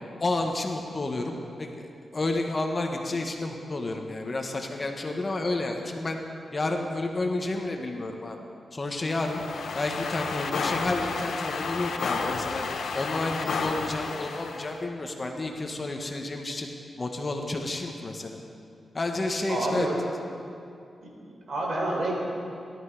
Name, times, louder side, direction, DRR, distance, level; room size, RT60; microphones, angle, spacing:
voice 1, 0.2-1.9 2.1-6.2 6.5-8.4 8.7-9.4 9.7-12.6 12.9-16.7 17.0-18.4 18.9-19.9, left 2 dB, 35° left, 3 dB, 1.5 m, -30 dB
sound 1, 9.1-14.8, left 4 dB, 80° left, 1.0 m, -31 dB
voice 2, 19.5-20.0 21.0-22.1, right 1 dB, 65° right, -2 dB, 4.2 m, -29 dB
17.5 x 12.5 x 5.0 m, 2.5 s
cardioid pair, 90°, 0 cm